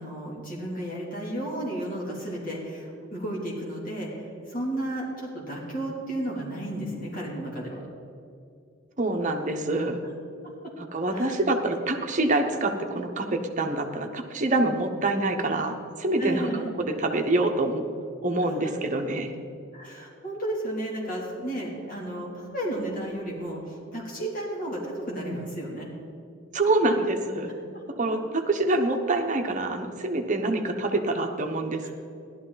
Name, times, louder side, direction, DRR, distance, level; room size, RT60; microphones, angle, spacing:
voice 1, 0.0-7.8 11.1-11.4 16.2-16.7 19.7-25.9 31.8-31.9, right 1 dB, 45° left, -4 dB, 3.0 m, -33 dB
voice 2, 9.0-10.0 10.8-16.5 16.8-17.8 18.2-19.3 26.5-27.5 28.0-31.9, right 2 dB, 40° right, 4 dB, 1.0 m, -26 dB
15.5 x 12.0 x 4.0 m, 2.5 s
head